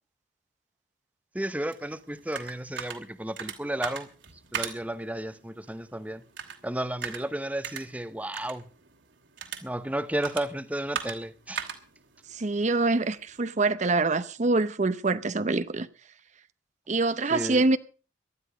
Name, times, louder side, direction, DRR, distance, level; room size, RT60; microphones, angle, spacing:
voice 1, 1.3-4.1 4.5-6.2 6.6-8.7 9.6-11.6 17.3-17.6, right 1 dB, 10° right, 0.8 m, -33 dB
sound 1, 1.7-13.4, right 7 dB, 70° right, 2.9 m, -41 dB
voice 2, 12.3-15.9 16.9-17.8, right 3 dB, 40° right, 0.7 m, -25 dB
18.0 x 12.5 x 5.0 m
head